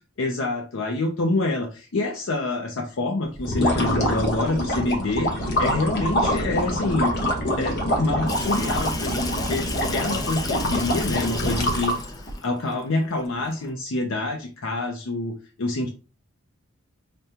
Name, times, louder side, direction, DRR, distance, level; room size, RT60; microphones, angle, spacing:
voice 1, 0.2-7.1 7.6-11.9 12.4-15.9, left 2 dB, 70° left, 3 dB, 0.6 m, -26 dB
sound 1, 3.4-12.3, equal, 55° left, 0.9 m, -25 dB
Water tap faucet / Sink (filling or washing), 8.3-13.7, left 3 dB, 20° left, 0.4 m, -35 dB
5.1 x 2.2 x 2.8 m, 0.33 s
head